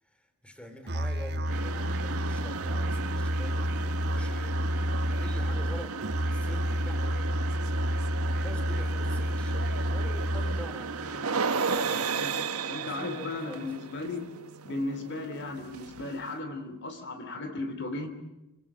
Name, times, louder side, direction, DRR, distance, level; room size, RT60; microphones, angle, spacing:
voice 1, 0.1-4.7 5.1-7.4 8.3-12.2 12.8-13.7, equal, 5° left, 7 dB, 3.5 m, -46 dB
Musical instrument, 0.9-10.8, equal, 50° right, 1.5 m, -30 dB
sound 1, 1.4-16.4, right 5 dB, 80° right, 1.4 m, -35 dB
voice 2, 12.2-14.3 14.6-18.1, left 2 dB, 55° left, 9 dB, 3.1 m, -36 dB
27.0 x 24.5 x 7.5 m, 0.96 s
head